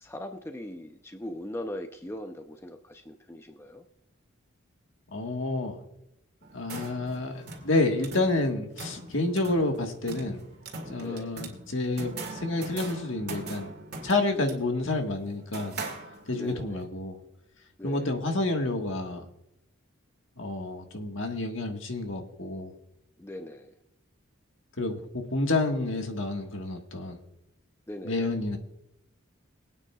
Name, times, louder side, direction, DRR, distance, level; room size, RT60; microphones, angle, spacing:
voice 1, 0.0-3.8 11.0-11.3 14.4-14.6 16.3-16.8 17.8-18.1 23.2-23.7 27.9-28.4, left 1 dB, 10° left, 6 dB, 0.5 m, -40 dB
voice 2, 5.1-5.8 6.5-10.4 10.9-13.7 14.0-15.8 16.3-17.2 17.8-19.2 20.4-22.7 24.8-27.2 28.0-28.6, left 2 dB, 65° left, 4 dB, 1.5 m, -29 dB
sound 1, 6.4-16.6, right 3 dB, 50° right, 2.0 m, -41 dB
23.5 x 9.1 x 2.3 m, 0.82 s
head